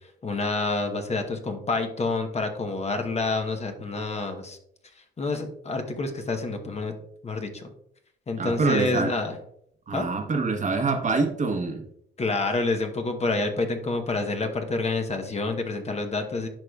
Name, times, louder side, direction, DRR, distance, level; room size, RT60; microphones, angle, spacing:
voice 1, 0.2-4.6 5.2-6.9 7.2-7.7 8.3-9.4 9.9-10.1 12.2-16.5, left 3 dB, 35° left, 5 dB, 1.0 m, -28 dB
voice 2, 8.4-9.1 9.9-11.8, right 4 dB, 40° right, 4 dB, 1.1 m, -25 dB
10.5 x 4.8 x 2.3 m, 0.71 s
cardioid pair, 90°, 20 cm